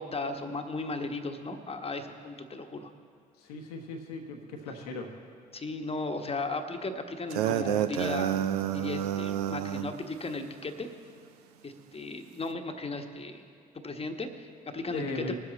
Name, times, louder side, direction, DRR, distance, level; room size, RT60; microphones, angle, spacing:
voice 1, 0.0-2.9 5.5-8.4 8.7-10.9 11.6-13.5 13.8-15.3, left 3 dB, 30° left, 6 dB, 1.3 m, -36 dB
voice 2, 3.4-5.1 14.9-15.3, left 2 dB, 80° left, 3 dB, 1.1 m, -38 dB
sound 1, 7.3-9.9, right 11 dB, 80° right, 0.4 m, -29 dB
20.5 x 7.7 x 4.1 m, 2.5 s
figure-of-eight pair, 40°, 20 cm